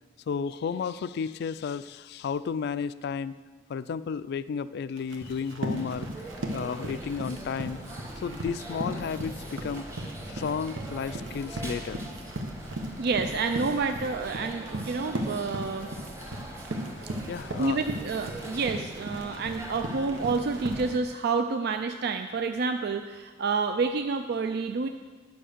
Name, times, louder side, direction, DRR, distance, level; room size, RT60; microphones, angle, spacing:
voice 1, 0.3-3.4 3.7-6.1 6.5-7.8 8.2-9.9 10.3-12.0 17.3-17.8, left 6 dB, 60° left, 15 dB, 0.3 m, -32 dB
Run, 5.0-21.0, right 1 dB, 85° right, 1.2 m, -37 dB
sound 1, 5.7-21.0, right 1 dB, 15° right, 1.2 m, -42 dB
voice 2, 13.0-15.9 17.6-24.9, right 4 dB, 60° right, 7 dB, 0.4 m, -29 dB
10.0 x 5.9 x 6.6 m, 1.4 s
head